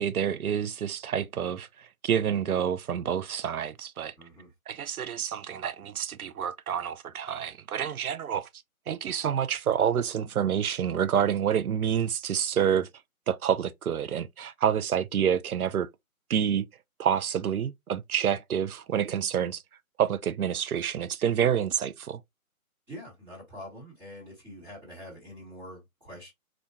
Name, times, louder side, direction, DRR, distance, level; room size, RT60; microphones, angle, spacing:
voice 1, 0.0-4.1 4.7-8.5 8.9-12.9 13.3-15.9 16.3-16.7 17.0-19.6 20.0-22.2, right 8 dB, 80° right, 0.6 m, -28 dB
voice 2, 4.2-4.5 22.9-26.3, equal, 5° right, 1.0 m, -45 dB
4.2 x 2.4 x 2.9 m
hypercardioid pair, 160°, 43 cm